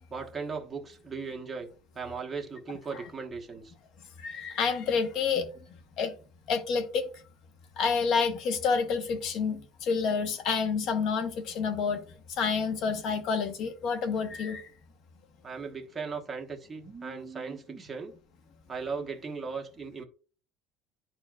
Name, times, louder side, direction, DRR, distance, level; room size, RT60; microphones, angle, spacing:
voice 1, 0.1-1.7 1.9-3.7 15.4-18.1 18.7-20.0, right 5 dB, 20° right, 1.2 m, -37 dB
voice 2, 4.2-5.5 6.0-6.1 6.5-7.1 7.8-12.0 12.4-14.7, left 5 dB, 55° left, 1.1 m, -28 dB
11.0 x 4.3 x 2.4 m
cardioid pair, 145°, 0 cm